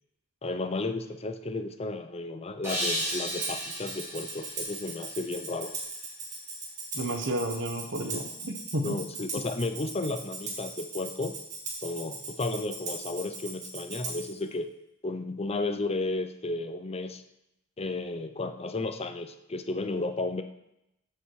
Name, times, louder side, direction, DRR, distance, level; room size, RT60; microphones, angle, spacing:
voice 1, 0.4-5.8 8.8-11.4 11.8-14.7 15.0-17.2 17.8-20.4, left 2 dB, 30° left, 8 dB, 0.6 m, -33 dB
sound 1, 2.6-5.8, equal, 15° right, 3.5 m, -35 dB
Tambourine, 2.7-14.4, right 3 dB, 35° right, 2.3 m, -39 dB
voice 2, 6.9-9.0 9.3-9.4, right 1 dB, 60° right, 5 dB, 1.3 m, -32 dB
14.0 x 5.7 x 4.8 m, 0.86 s
head